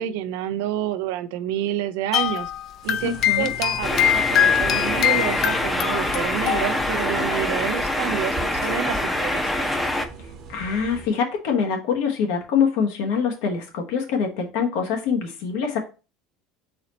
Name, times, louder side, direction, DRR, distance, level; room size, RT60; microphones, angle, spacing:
voice 1, 0.0-2.5 2.8-9.7, right 11 dB, 80° right, 0.4 m, -29 dB
sound 1, 2.1-7.1 7.4-7.6 8.6-8.7, left 10 dB, 50° left, 0.4 m, -23 dB
sound 2, 2.8-11.1, right 1 dB, 50° right, 1.0 m, -40 dB
voice 2, 3.0-3.5 10.5-15.8, left 6 dB, 75° left, 1.2 m, -24 dB
sound 3, 3.8-10.0, left 1 dB, 10° left, 0.6 m, -25 dB
4.0 x 3.1 x 4.0 m
supercardioid pair, 120°, 0 cm